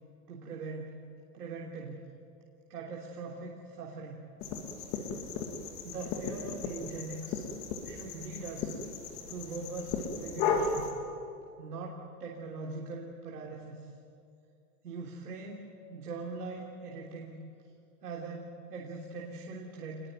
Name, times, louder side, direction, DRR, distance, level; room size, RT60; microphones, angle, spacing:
voice 1, 0.3-0.9 1.3-2.0 2.7-4.2 5.8-7.4 7.8-8.8 9.3-10.9 11.6-13.8 14.8-17.4 18.0-20.0, right 3 dB, 75° right, -1 dB, 3.4 m, -41 dB
sound 1, 4.4-10.9, left 5 dB, 25° left, 2.3 m, -35 dB
27.5 x 20.5 x 9.3 m, 2.5 s
supercardioid pair, 170°, 46 cm